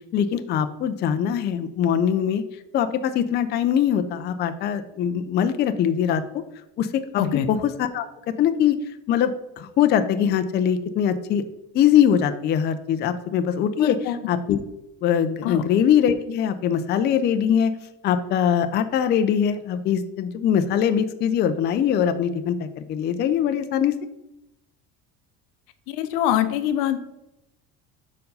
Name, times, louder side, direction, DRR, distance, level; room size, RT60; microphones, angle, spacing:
voice 1, 0.1-2.4 2.7-6.2 6.8-8.0 8.4-8.8 9.1-11.4 11.7-14.0 14.3-14.6 15.0-17.7 18.0-23.9, left 9 dB, 35° left, 10 dB, 0.4 m, -22 dB
voice 2, 13.8-14.2 15.4-15.6 25.9-27.0, left 11 dB, 80° left, 11 dB, 0.8 m, -24 dB
5.3 x 4.6 x 5.4 m, 0.87 s
cardioid pair, 135°, 32 cm